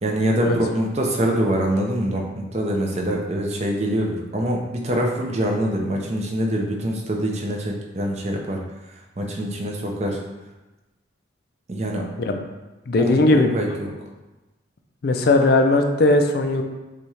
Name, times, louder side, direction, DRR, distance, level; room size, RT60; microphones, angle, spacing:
voice 1, 0.0-8.6 9.2-10.2 11.7-12.1 12.9-13.9, right 1 dB, 35° right, 0 dB, 0.6 m, -24 dB
voice 2, 12.9-13.6 15.0-16.6, left 2 dB, 50° left, 5 dB, 0.4 m, -18 dB
6.7 x 2.4 x 3.1 m, 1.1 s
head